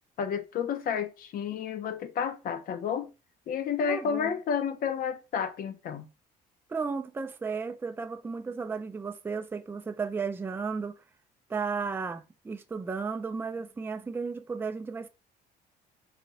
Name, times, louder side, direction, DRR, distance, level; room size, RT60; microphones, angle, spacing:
voice 1, 0.2-3.1 3.5-6.1, left 7 dB, 55° left, 0.7 m, -31 dB
voice 2, 3.9-4.3 6.7-11.0 11.5-15.1, right 5 dB, 15° right, 0.4 m, -34 dB
4.1 x 2.2 x 4.0 m
cardioid pair, 110°, 17 cm